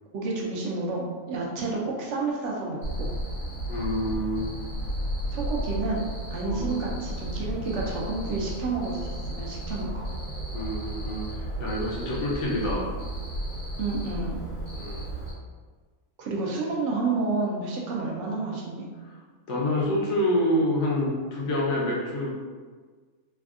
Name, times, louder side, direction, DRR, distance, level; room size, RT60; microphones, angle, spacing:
voice 1, 0.1-3.1 5.3-6.0 6.3-10.1 13.8-14.4 16.2-18.9, right 3 dB, 65° right, -2 dB, 0.8 m, -30 dB
Cricket, 2.8-15.3, right 1 dB, 90° left, 1.5 m, -33 dB
voice 2, 3.7-4.5 6.5-6.8 10.5-12.9 14.8-15.0 19.0-19.1 19.5-22.4, left 1 dB, 60° left, -4 dB, 1.0 m, -27 dB
3.4 x 2.2 x 2.4 m, 1.5 s
omnidirectional pair, 1.5 m